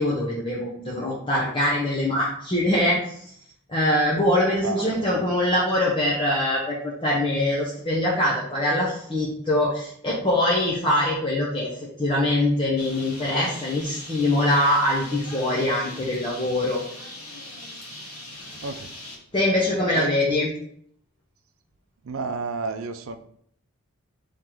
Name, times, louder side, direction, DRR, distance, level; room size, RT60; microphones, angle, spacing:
voice 1, 0.0-3.3 3.7-11.7 12.0-16.8 19.3-20.5, left 1 dB, 20° left, -6 dB, 0.8 m, -23 dB
voice 2, 4.6-5.1 18.5-18.9 19.9-20.1 22.0-23.2, right 4 dB, 70° right, 8 dB, 0.5 m, -31 dB
Bird, 12.8-19.2, left 1 dB, 80° left, 1.4 m, -40 dB
3.8 x 3.1 x 4.4 m, 0.65 s
head